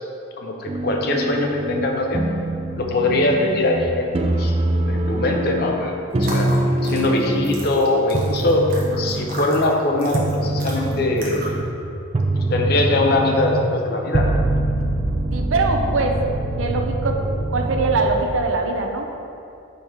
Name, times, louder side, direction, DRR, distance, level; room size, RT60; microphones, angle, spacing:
voice 1, 0.4-2.2 2.8-4.5 4.9-5.9 6.2-6.5 6.8-8.6 9.0-11.4 12.5-14.4, left 2 dB, 50° left, 1 dB, 0.5 m, -21 dB
sound 1, 0.7-3.9 4.1-5.8 6.1-7.7 8.1-9.7 10.1-18.4, right 1 dB, 30° right, 0.3 m, -24 dB
sound 2, 6.1-11.7, equal, 45° right, 1.0 m, -35 dB
voice 2, 15.3-16.2 16.6-17.2 17.5-19.1, right 3 dB, 75° right, 3 dB, 0.5 m, -22 dB
4.6 x 4.3 x 4.8 m, 2.7 s
head